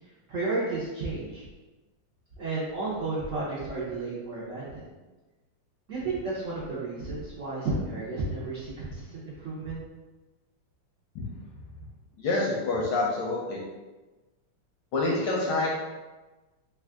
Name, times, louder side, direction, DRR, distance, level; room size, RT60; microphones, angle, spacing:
voice 1, 0.3-1.4 2.4-4.9 5.9-9.8, right 3 dB, 75° right, -8 dB, 0.7 m, -32 dB
voice 2, 12.2-13.6 14.9-15.7, left 2 dB, 70° left, -3 dB, 1.1 m, -27 dB
3.5 x 2.4 x 3.4 m, 1.2 s
omnidirectional pair, 2.4 m